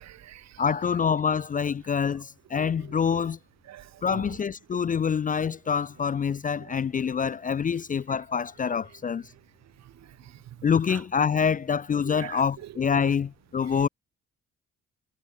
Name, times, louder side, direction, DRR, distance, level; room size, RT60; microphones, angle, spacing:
voice 1, 0.0-0.6 2.6-3.0 3.6-4.4 6.6-6.8 9.6-11.0 11.4-11.5 12.0-13.1 13.6-13.9, right 12 dB, 60° right, 0.9 m, -45 dB
voice 2, 0.6-3.4 4.0-9.3 10.6-13.9, left 6 dB, 30° left, 0.4 m, -26 dB
cardioid pair, 90°, 30 cm